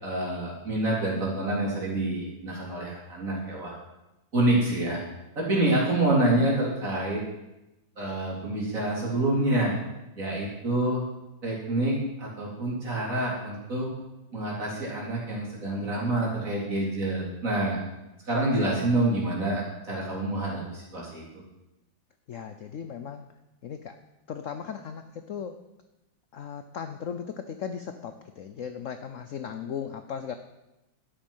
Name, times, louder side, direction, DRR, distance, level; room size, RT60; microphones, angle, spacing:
voice 1, 0.0-3.7 4.3-5.0 5.4-7.2 8.0-9.7 10.2-11.0 11.4-13.9 14.3-17.8 18.3-21.2, right 1 dB, 40° right, -4 dB, 4.1 m, -27 dB
voice 2, 22.3-23.2 23.6-23.9 24.3-25.6 26.3-30.3, left 7 dB, 65° left, 8 dB, 0.7 m, -37 dB
12.0 x 10.0 x 5.5 m, 0.96 s
omnidirectional pair, 2.1 m